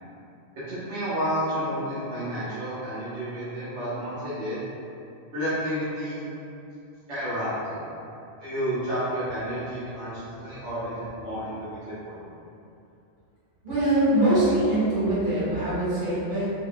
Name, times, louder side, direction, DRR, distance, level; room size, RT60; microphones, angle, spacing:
voice 1, 0.7-4.6 5.3-6.2 7.1-7.8 8.4-12.3, equal, 90° right, -13 dB, 1.4 m, -31 dB
voice 2, 13.6-16.5, right 1 dB, 40° right, -14 dB, 1.8 m, -23 dB
4.1 x 2.7 x 2.2 m, 2.7 s
omnidirectional pair, 1.2 m